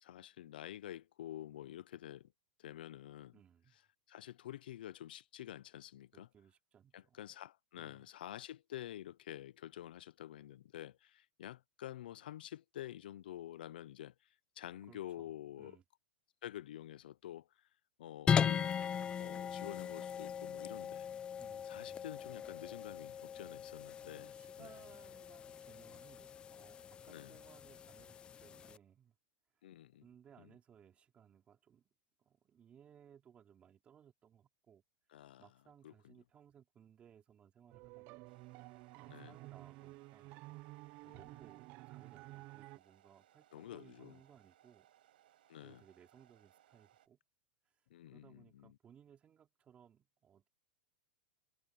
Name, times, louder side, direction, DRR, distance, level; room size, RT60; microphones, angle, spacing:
voice 1, 0.0-2.3 2.6-3.4 4.1-6.3 6.9-14.1 14.6-15.8 16.4-17.5 18.0-18.8 19.2-21.1 21.6-24.3 24.6-24.7 27.1-27.4 29.6-30.0 30.4-30.5 35.1-35.5 35.8-36.1 39.1-39.3 41.1-41.2 43.5-44.2 45.5-45.8 47.9-48.7, left 12 dB, 80° left, 0.6 m, -49 dB
voice 2, 3.3-3.8 6.1-7.2 7.8-8.0 14.9-15.8 21.4-22.0 24.0-29.2 30.0-31.9 32.2-34.8 35.4-38.2 39.0-40.4 41.0-44.9 45.6-47.2 48.1-50.5, right 8 dB, 25° right, 3.4 m, -63 dB
sound 1, 18.3-28.8, left 8 dB, 20° left, 0.4 m, -39 dB
sound 2, 37.7-42.8, right 21 dB, 45° right, 0.8 m, -52 dB
sound 3, 38.2-47.1, right 12 dB, 80° right, 5.1 m, -69 dB
hypercardioid pair, 135°, 5 cm